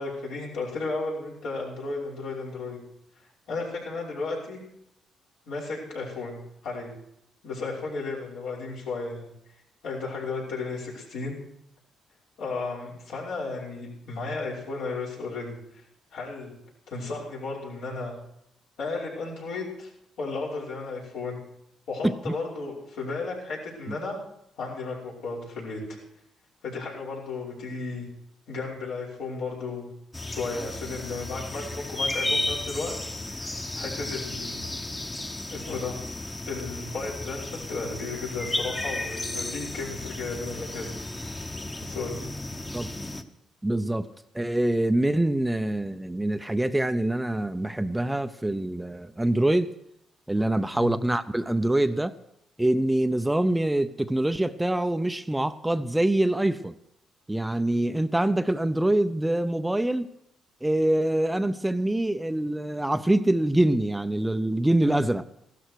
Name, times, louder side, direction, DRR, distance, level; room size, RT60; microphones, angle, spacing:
voice 1, 0.0-2.8 3.5-4.6 5.5-6.4 6.6-6.9 7.4-9.3 9.8-11.4 12.4-15.6 16.1-16.5 16.9-18.1 18.8-19.9 20.2-21.4 21.9-24.2 24.6-26.0 26.6-28.1 28.5-29.9 30.2-34.6 35.5-36.0 36.5-40.9 41.8-42.3 50.7-50.9 64.8-65.0, left 3 dB, 80° left, 5.7 m, -34 dB
voice 2, 22.0-22.3 42.7-42.9 43.6-44.1 44.3-49.7 50.3-52.1 52.6-56.7 57.3-60.1 60.6-65.2, right 1 dB, 10° right, 0.6 m, -25 dB
sound 1, 30.1-43.2, left 2 dB, 20° left, 1.1 m, -34 dB
15.5 x 13.0 x 4.7 m
cardioid pair, 90°, 0 cm